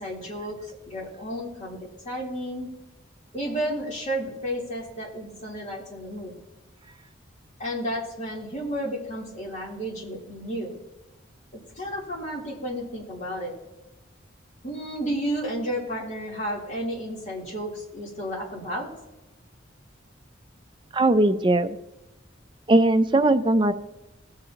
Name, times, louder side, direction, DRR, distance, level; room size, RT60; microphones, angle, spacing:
voice 1, 0.0-1.8 2.0-2.7 3.3-6.3 7.6-10.8 11.7-13.5 14.6-18.9, equal, 40° left, -4 dB, 3.4 m, -32 dB
voice 2, 20.9-21.8 22.7-23.7, right 2 dB, 25° right, 9 dB, 0.5 m, -19 dB
19.5 x 7.7 x 2.9 m, 0.99 s
head